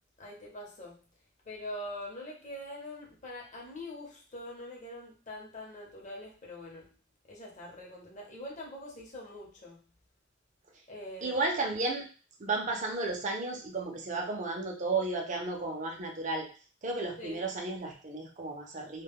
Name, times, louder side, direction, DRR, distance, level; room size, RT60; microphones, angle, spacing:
voice 1, 0.2-1.0 1.5-6.9 7.3-9.8 10.9-11.4 17.2-17.4, left 1 dB, 40° left, -2 dB, 0.8 m, -43 dB
voice 2, 11.2-12.1 12.4-16.5 16.8-19.0, right 3 dB, 40° right, 1 dB, 0.5 m, -33 dB
2.2 x 2.1 x 3.5 m, 0.37 s
head